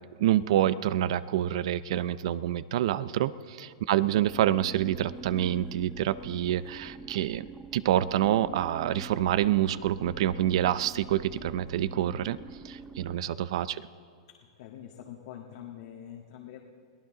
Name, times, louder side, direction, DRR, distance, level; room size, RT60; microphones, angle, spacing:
voice 1, 0.2-7.5 7.7-12.4 12.6-13.8, right 12 dB, 65° right, 16 dB, 0.5 m, -27 dB
sound 1, 4.1-13.1, right 3 dB, 10° right, 0.6 m, -46 dB
voice 2, 14.3-16.6, left 10 dB, 60° left, 0 dB, 1.6 m, -45 dB
22.0 x 16.0 x 3.9 m, 2.1 s
hypercardioid pair, 140°, 3 cm